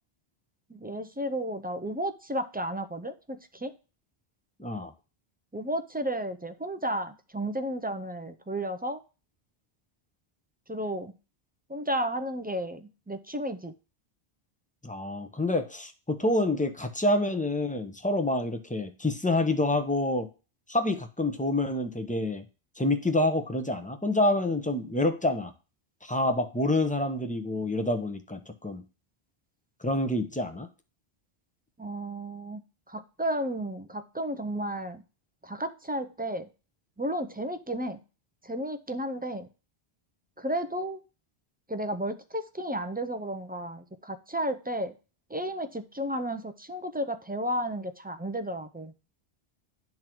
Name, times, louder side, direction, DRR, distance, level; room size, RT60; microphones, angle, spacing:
voice 1, 0.7-3.7 5.5-9.0 10.7-11.1 11.7-13.7 31.8-32.6 32.9-35.0 35.4-36.5 37.0-38.0 38.4-39.5 40.4-41.0 41.7-44.9 45.3-48.9, right 1 dB, 15° right, 9 dB, 0.3 m, -33 dB
voice 2, 4.6-4.9 14.8-20.3 20.7-22.4 22.8-25.5 26.0-28.8 29.8-30.7, left 1 dB, 10° left, 6 dB, 0.7 m, -27 dB
11.0 x 3.8 x 4.5 m, 0.32 s
omnidirectional pair, 1.1 m